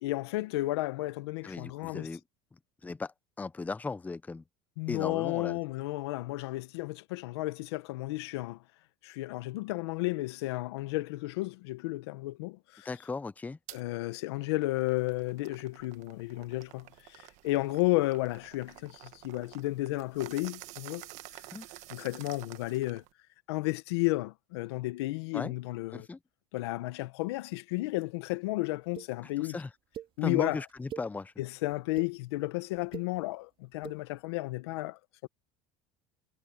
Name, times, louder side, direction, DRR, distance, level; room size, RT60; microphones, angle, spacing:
voice 1, 0.0-2.1 4.8-8.6 9.0-12.9 13.7-21.1 21.9-23.0 23.5-26.1 26.5-29.6 30.2-30.6 31.4-35.3, left 20 dB, 85° left, 1.3 m, -33 dB
voice 2, 1.4-2.2 2.8-4.4 4.9-5.6 12.8-13.6 21.5-21.7 25.3-25.5 25.9-26.2 29.4-29.7 30.2-31.3, left 3 dB, 10° left, 0.7 m, -37 dB
sound 1, 13.7-13.8 14.3-23.1, right 18 dB, 65° right, 1.5 m, -50 dB
sound 2, 28.9-29.1 29.9-30.1 30.7-31.1 31.7-32.1 32.7-33.1 33.7-34.0, right 11 dB, 40° right, 2.0 m, -42 dB
supercardioid pair, 115°, 13 cm